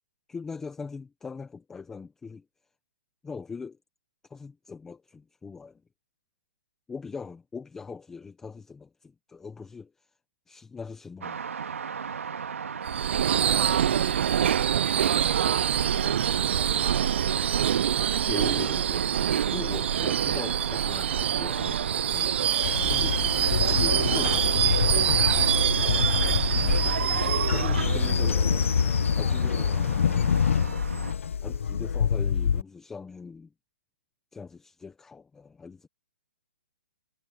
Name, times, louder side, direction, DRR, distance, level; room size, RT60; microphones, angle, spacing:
voice 1, 0.3-2.4 3.2-3.8 4.3-5.8 6.9-10.1 10.5-11.4 18.2-19.1 19.5-23.3 23.7-24.6 24.9-25.2 25.8-26.8 27.5-28.7 29.2-30.5 31.4-33.5 34.3-35.9, left 5 dB, 5° left, 0.7 m, -41 dB
sound 1, 11.2-31.1, right 6 dB, 90° right, 2.3 m, -38 dB
Subway metro underground / Screech, 12.9-28.8, right 9 dB, 60° right, 0.4 m, -25 dB
voice 2, 13.2-13.3, right 34 dB, 25° right, 6.5 m, -46 dB
Train, 22.6-32.6, left 7 dB, 75° left, 0.8 m, -26 dB
hypercardioid pair, 165°, 7 cm